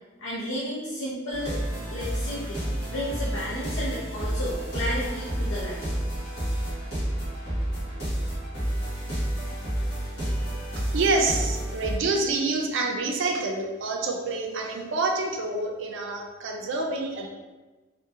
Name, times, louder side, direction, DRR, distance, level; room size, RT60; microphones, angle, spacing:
voice 1, 0.2-1.6 1.9-2.6 2.9-6.0, left 1 dB, 85° left, -6 dB, 0.6 m, -32 dB
sound 1, 1.3-12.0, right 1 dB, 60° left, 1.4 m, -30 dB
voice 2, 10.8-17.3, right 3 dB, 70° right, 2 dB, 0.4 m, -27 dB
3.6 x 2.2 x 2.7 m, 1.2 s
head